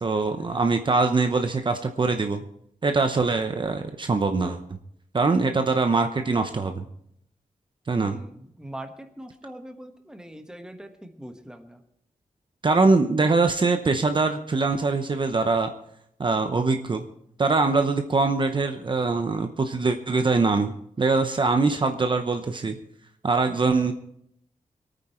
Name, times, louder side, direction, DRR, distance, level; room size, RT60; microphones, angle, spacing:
voice 1, 0.0-2.4 2.8-4.6 5.1-6.9 7.9-8.2 12.6-15.7 16.2-17.0 17.4-20.7 21.0-22.8 23.2-23.9, right 3 dB, 35° right, 7 dB, 0.8 m, -23 dB
voice 2, 8.0-11.8 23.5-23.6, right 1 dB, 5° right, 6 dB, 1.3 m, -42 dB
24.0 x 9.1 x 4.4 m, 0.72 s
wide cardioid pair, 145°, 13 cm